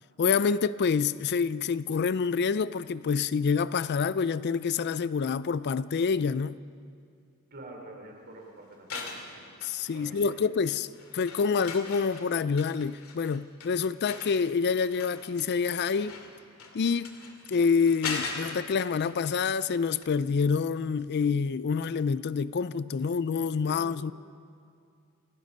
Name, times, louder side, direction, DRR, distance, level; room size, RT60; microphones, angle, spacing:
voice 1, 0.2-6.6 9.6-10.9 11.1-16.1 16.7-17.1 17.5-24.1, left 5 dB, 50° left, 0.4 m, -27 dB
voice 2, 7.5-9.5 9.9-10.4 23.6-24.1, right 2 dB, 50° right, 3.6 m, -47 dB
sound 1, 8.7-10.3 10.7-19.7 20.0-20.1, left 4 dB, 80° left, 2.4 m, -41 dB
28.5 x 17.5 x 5.4 m
head